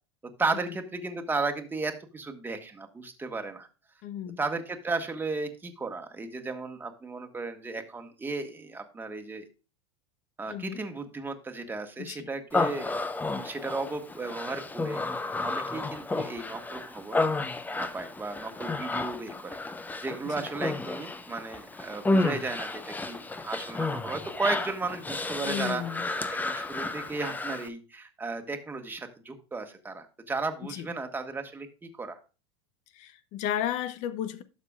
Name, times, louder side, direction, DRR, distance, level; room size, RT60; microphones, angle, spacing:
voice 1, 0.4-3.7 4.4-9.5 10.4-13.0 13.3-15.0 15.4-17.2 17.8-19.6 20.0-25.8 26.3-32.2, right 3 dB, 15° right, 1.5 m, -34 dB
voice 2, 4.0-4.4 10.5-10.8 12.0-12.3 20.2-20.4 25.4-26.1 30.6-30.9 32.9-34.4, left 10 dB, 55° left, 0.8 m, -34 dB
Human voice, 12.5-27.7, left 2 dB, 10° left, 0.8 m, -32 dB
12.0 x 6.6 x 2.4 m
hypercardioid pair, 95°, 15 cm